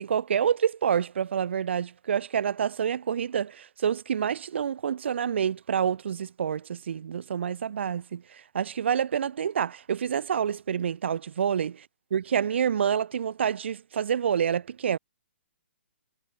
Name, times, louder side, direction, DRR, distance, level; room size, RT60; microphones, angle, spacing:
voice 1, 0.0-11.8 12.1-15.0, right 8 dB, 60° right, 5.1 m, -27 dB
hypercardioid pair, 140°, 7 cm